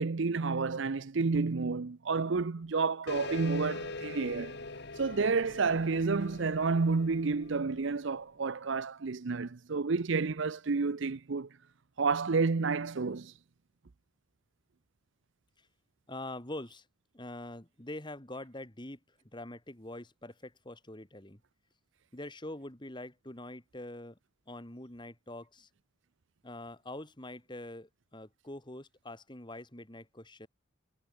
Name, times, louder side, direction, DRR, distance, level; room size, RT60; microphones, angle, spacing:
voice 1, 0.0-4.6 5.0-11.5 12.0-13.3, right 4 dB, 60° right, 0.6 m, -30 dB
sound 1, 3.1-8.1, left 3 dB, 55° left, 1.7 m, -43 dB
voice 2, 16.1-16.9 17.1-19.0 19.3-21.4 22.1-24.2 24.5-25.7 26.4-30.5, left 1 dB, 20° left, 2.3 m, -44 dB
head